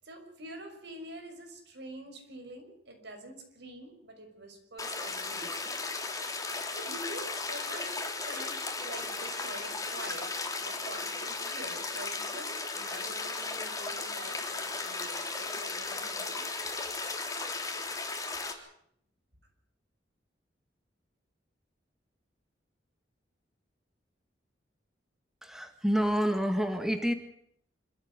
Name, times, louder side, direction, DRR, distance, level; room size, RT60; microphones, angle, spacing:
voice 1, 0.0-5.8 6.7-10.3 10.6-16.4, right 1 dB, 70° right, 4 dB, 6.1 m, -46 dB
sound 1, 4.8-18.5, left 3 dB, 20° left, 3.5 m, -36 dB
voice 2, 25.4-27.1, equal, 5° right, 7 dB, 1.7 m, -28 dB
27.0 x 14.0 x 9.8 m, 0.69 s
head